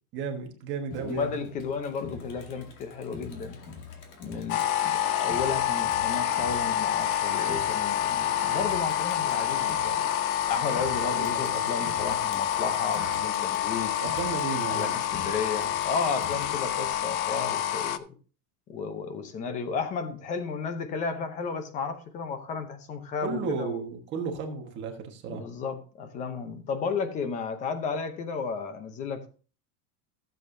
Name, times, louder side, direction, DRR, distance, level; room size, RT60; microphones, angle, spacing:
voice 1, 0.1-1.4 11.0-11.8 14.0-14.9 23.2-25.5, right 5 dB, 25° right, 3 dB, 1.4 m, -34 dB
Crowd, 0.9-16.9, left 5 dB, 50° left, 2.2 m, -45 dB
voice 2, 1.0-3.6 4.2-10.1 10.5-13.9 14.7-18.1 18.7-23.8 25.3-29.3, left 5 dB, 15° left, 10 dB, 0.7 m, -33 dB
sound 1, 4.5-18.0, left 10 dB, 65° left, 0.8 m, -28 dB
15.5 x 7.9 x 2.7 m, 0.37 s
supercardioid pair, 175°, 45 cm